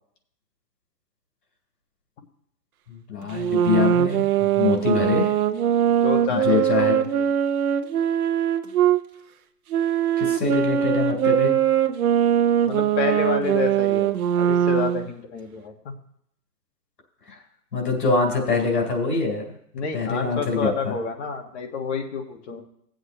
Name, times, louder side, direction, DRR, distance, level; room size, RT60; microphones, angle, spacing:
voice 1, 2.9-5.3 6.3-7.0 10.2-11.5 17.7-19.5 19.9-20.9, left 4 dB, 90° left, 0 dB, 3.8 m, -24 dB
sound 1, 3.3-9.0 9.7-15.1, right 10 dB, 65° right, 0.9 m, -21 dB
voice 2, 5.9-7.3 12.6-15.9 19.7-22.6, left 5 dB, 45° left, 3 dB, 1.6 m, -29 dB
16.5 x 7.9 x 3.0 m, 0.72 s
hypercardioid pair, 150°, 48 cm